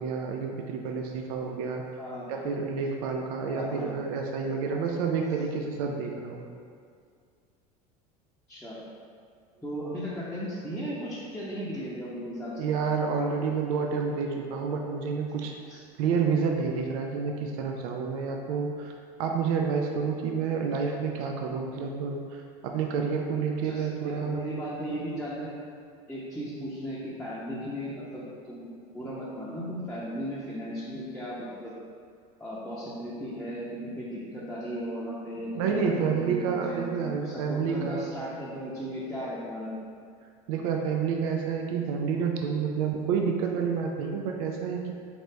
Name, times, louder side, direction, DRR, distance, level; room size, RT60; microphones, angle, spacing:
voice 1, 0.0-1.8 2.3-6.5 12.6-24.4 35.6-38.2 40.5-44.9, right 5 dB, 70° right, 2 dB, 0.4 m, -29 dB
voice 2, 2.0-2.3 3.5-3.9 8.5-8.8 9.6-12.6 15.7-15.8 23.6-25.5 26.1-31.7 32.4-39.7, equal, 5° left, -10 dB, 0.8 m, -36 dB
4.1 x 2.9 x 3.2 m, 2.2 s
hypercardioid pair, 80°, 20 cm